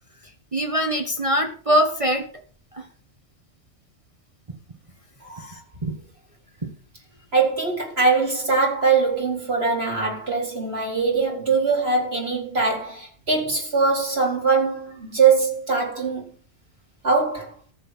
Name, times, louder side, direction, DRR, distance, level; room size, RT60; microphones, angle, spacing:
voice 1, 0.5-2.2 2.7-2.9 5.4-6.0 6.6-6.7, equal, 25° right, 1.4 m, -23 dB
voice 2, 5.2-5.6 7.3-16.3 17.0-17.5, right 4 dB, 50° right, 4.6 m, -22 dB
14.0 x 6.7 x 7.3 m
omnidirectional pair, 1.3 m